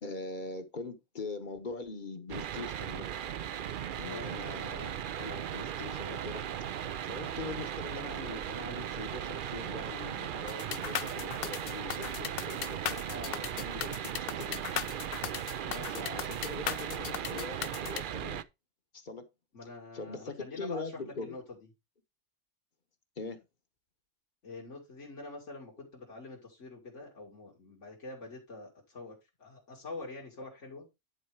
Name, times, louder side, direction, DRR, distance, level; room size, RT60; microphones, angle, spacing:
voice 1, 0.0-3.1 4.0-6.7 7.0-14.7 15.8-18.4 18.9-19.2 19.6-21.4 23.2-23.4, left 3 dB, 45° left, 1.2 m, -42 dB
sound 1, 2.3-18.4, right 9 dB, 55° right, 0.6 m, -37 dB
sound 2, 10.5-18.0, left 9 dB, 60° left, 0.7 m, -37 dB
voice 2, 19.5-21.4 24.4-30.9, left 3 dB, 80° left, 2.4 m, -45 dB
10.5 x 4.3 x 4.8 m
omnidirectional pair, 1.2 m